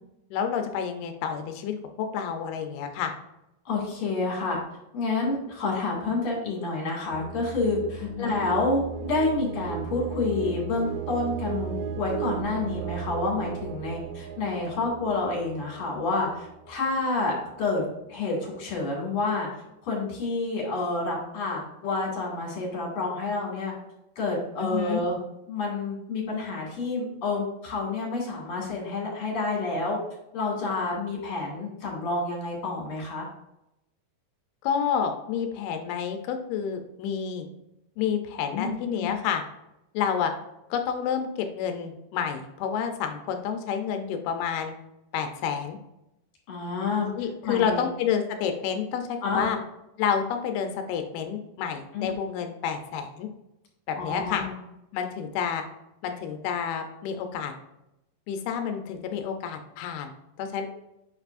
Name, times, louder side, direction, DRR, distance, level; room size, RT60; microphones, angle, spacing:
voice 1, 0.3-3.1 8.0-8.4 24.6-25.0 34.6-37.5 38.0-39.4 39.9-40.3 40.7-44.7 45.1-45.8 47.2-49.6 50.0-53.3 53.9-54.5 54.9-55.6 56.0-57.5 58.3-60.1 60.4-60.7, left 7 dB, 80° left, 6 dB, 2.2 m, -29 dB
voice 2, 3.6-4.6 4.9-17.8 18.1-19.5 19.8-23.7 24.2-25.2 25.5-30.0 30.3-33.3 38.5-38.7 39.0-39.1 46.5-47.1 47.4-47.8 49.2-49.5 51.9-52.2 54.0-54.5, left 3 dB, 40° left, -2 dB, 2.3 m, -29 dB
sound 1, 7.1-16.9, right 7 dB, 85° right, 2.9 m, -36 dB
7.4 x 5.7 x 2.6 m, 0.88 s
omnidirectional pair, 5.3 m